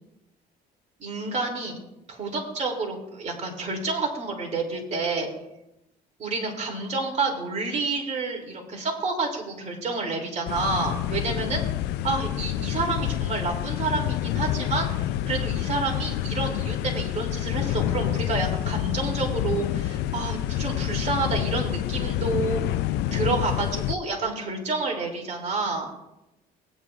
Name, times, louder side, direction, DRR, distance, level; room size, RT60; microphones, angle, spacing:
voice 1, 1.0-1.8 2.1-5.3 6.2-11.6 12.0-14.9 15.3-22.6 23.1-25.9, right 3 dB, 45° right, 0 dB, 2.8 m, -29 dB
sound 1, 10.5-23.9, left 12 dB, 85° left, 0.4 m, -28 dB
16.5 x 9.4 x 2.5 m, 0.90 s
cardioid pair, 110°, 17 cm